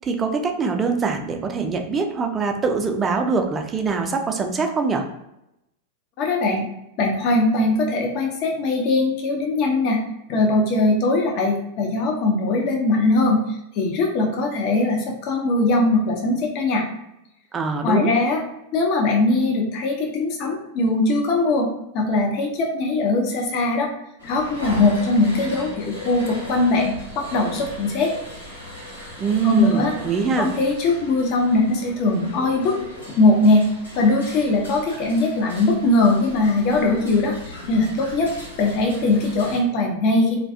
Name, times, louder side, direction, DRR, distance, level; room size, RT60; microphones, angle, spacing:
voice 1, 0.0-5.0 17.5-18.1 29.2-30.5, right 5 dB, 20° right, 4 dB, 0.3 m, -23 dB
voice 2, 6.2-6.6 7.0-10.0 10.3-16.9 17.8-18.4 18.7-21.7 21.9-23.9 24.2-28.1 29.4-29.9 30.4-32.8 33.2-33.7 34.0-38.3 38.6-40.4, left 2 dB, 40° left, 1 dB, 0.4 m, -20 dB
sound 1, 24.2-39.6, equal, 85° left, 0.8 m, -38 dB
2.3 x 2.2 x 2.5 m, 0.86 s
figure-of-eight pair, 90°, 0 cm